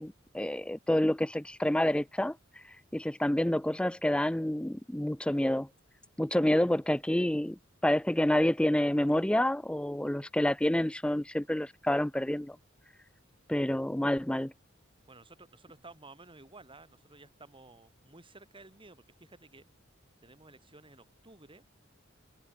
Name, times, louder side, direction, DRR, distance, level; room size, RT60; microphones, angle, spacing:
voice 1, 0.0-2.4 2.9-5.7 6.2-12.6 13.5-14.5, left 1 dB, 5° left, 0.4 m, -28 dB
voice 2, 15.1-19.7 20.2-21.6, right 2 dB, 25° right, 4.4 m, -54 dB
head